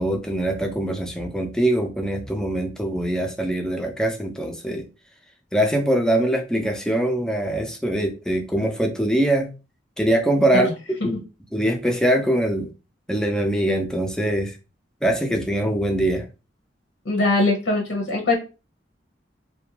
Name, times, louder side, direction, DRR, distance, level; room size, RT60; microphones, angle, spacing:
voice 1, 0.0-4.9 5.5-9.5 10.0-10.7 11.0-11.2 11.5-12.7 13.1-14.5 15.0-16.3, right 1 dB, 5° left, 0.4 m, -23 dB
voice 2, 17.0-18.3, left 2 dB, 85° left, 0.8 m, -21 dB
2.5 x 2.2 x 2.8 m
head